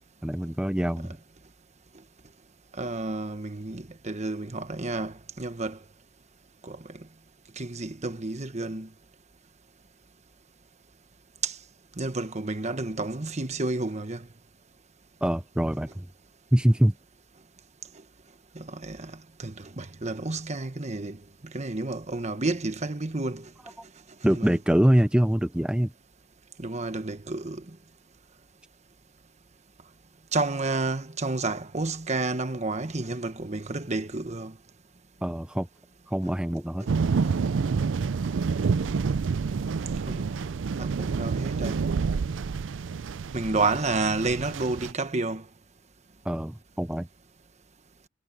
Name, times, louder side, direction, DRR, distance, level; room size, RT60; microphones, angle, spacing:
voice 1, 0.2-1.2 15.2-16.1 16.5-16.9 24.2-25.9 35.2-35.7 36.1-36.9 46.3-47.1, equal, 5° right, 0.5 m, -24 dB
voice 2, 2.8-5.8 6.6-7.0 7.6-8.9 11.4-11.6 12.0-14.3 18.5-23.5 24.2-24.6 26.6-27.6 30.3-34.5 40.1-40.3 40.8-41.8 43.3-45.4, right 3 dB, 35° right, 1.3 m, -30 dB
sound 1, 36.9-44.9, right 5 dB, 80° right, 0.4 m, -28 dB
head